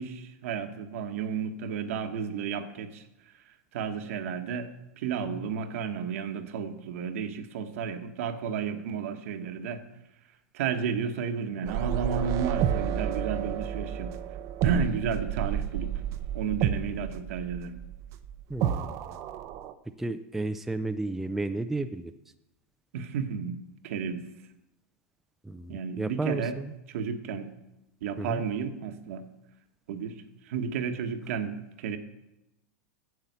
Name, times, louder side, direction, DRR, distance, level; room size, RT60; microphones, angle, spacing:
voice 1, 0.0-3.0 3.7-4.7 5.0-9.8 10.5-14.1 14.6-15.9 16.3-17.8 22.9-24.2 25.7-26.6 26.9-27.5 28.0-29.2 29.9-30.2 30.4-32.0, right 6 dB, 70° right, 7 dB, 1.2 m, -32 dB
sound 1, 11.7-19.7, right 10 dB, 40° right, 0.6 m, -31 dB
voice 2, 18.5-18.9 20.0-22.1 25.4-26.7 28.2-28.4, right 2 dB, 5° right, 9 dB, 0.4 m, -32 dB
9.7 x 7.0 x 8.0 m, 0.92 s
supercardioid pair, 140°, 8 cm